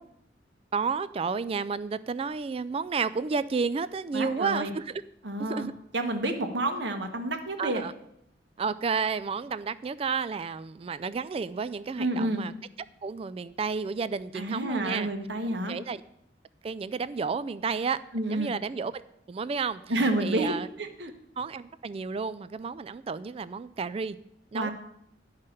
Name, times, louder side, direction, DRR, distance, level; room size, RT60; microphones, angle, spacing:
voice 1, 0.7-5.0 5.4-5.7 7.6-7.9 8.6-12.5 13.0-15.1 15.7-16.0 16.6-18.0 18.3-19.0 19.3-19.9 20.2-20.7 21.4-24.2 24.5-24.7, right 5 dB, 35° right, 16 dB, 0.3 m, -31 dB
voice 2, 4.1-4.7 5.2-7.8 12.0-12.4 14.3-15.8 18.1-18.5 19.9-21.1 24.5-24.7, right 1 dB, 75° right, 5 dB, 1.3 m, -29 dB
10.5 x 5.6 x 6.5 m, 0.77 s
head